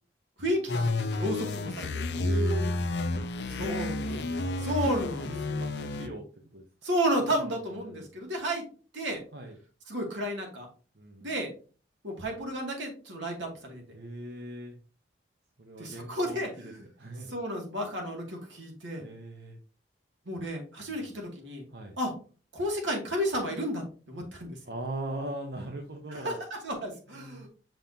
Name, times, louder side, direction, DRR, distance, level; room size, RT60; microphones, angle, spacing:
voice 1, 0.4-1.9 3.6-4.3 4.6-5.3 6.8-8.6 8.9-9.2 9.9-10.7 11.2-11.5 12.0-13.8 15.8-16.8 17.3-19.1 20.3-21.7 22.0-22.1 22.5-24.6 26.1-27.5, equal, 80° right, 1 dB, 2.4 m, -32 dB
sound 1, 0.7-6.1, left 2 dB, 65° left, 0.6 m, -30 dB
voice 2, 2.1-2.7 3.5-4.8 5.2-6.2 6.5-6.6 7.2-8.1 9.3-9.6 10.9-11.3 13.9-14.8 15.6-17.3 19.0-19.6 20.8-21.1 21.7-22.0 24.6-26.4 27.1-27.5, right 2 dB, 60° right, 2 dB, 0.9 m, -40 dB
7.0 x 5.7 x 2.8 m, 0.37 s
head